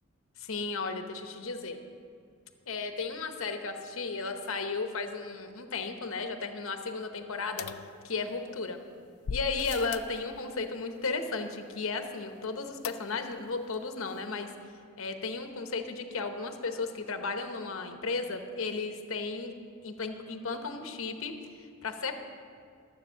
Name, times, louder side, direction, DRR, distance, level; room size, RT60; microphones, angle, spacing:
voice 1, 0.4-1.8 2.7-7.7 8.0-8.8 9.3-14.5 15.0-19.5 19.8-22.2, left 4 dB, 65° left, 6 dB, 0.9 m, -34 dB
sound 1, 7.6-8.6 9.2-10.2 12.8-13.4 13.7-13.8 14.1-14.2, left 6 dB, 85° left, 0.4 m, -39 dB
12.5 x 7.9 x 6.4 m, 2.3 s
head